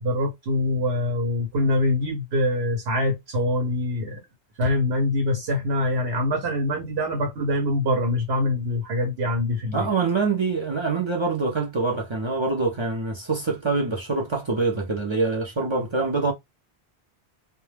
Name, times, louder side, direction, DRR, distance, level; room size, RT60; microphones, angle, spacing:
voice 1, 0.0-4.2 4.6-9.9, left 1 dB, 70° right, 1.0 m, -24 dB
voice 2, 9.7-16.3, right 3 dB, 40° right, 0.4 m, -25 dB
2.2 x 2.1 x 3.2 m
omnidirectional pair, 1.1 m